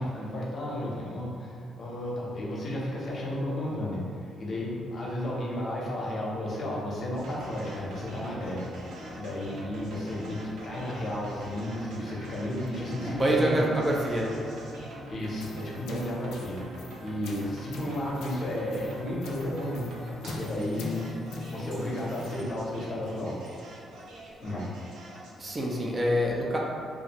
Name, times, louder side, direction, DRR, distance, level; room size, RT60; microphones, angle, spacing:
voice 1, 0.0-8.7 9.1-13.7 15.1-19.8 20.2-21.0 21.5-23.4 24.4-24.7, left 1 dB, 50° left, -4 dB, 0.7 m, -33 dB
sound 1, 7.1-25.4, right 1 dB, 85° right, 0.5 m, -44 dB
voice 2, 13.0-14.3 25.4-26.6, equal, 25° right, -2 dB, 0.4 m, -26 dB
sound 2, 15.2-22.4, left 2 dB, 85° left, 0.3 m, -43 dB
sound 3, 19.5-24.5, left 1 dB, 60° right, 0.9 m, -44 dB
2.5 x 2.4 x 2.9 m, 2.3 s
cardioid pair, 90°, 0 cm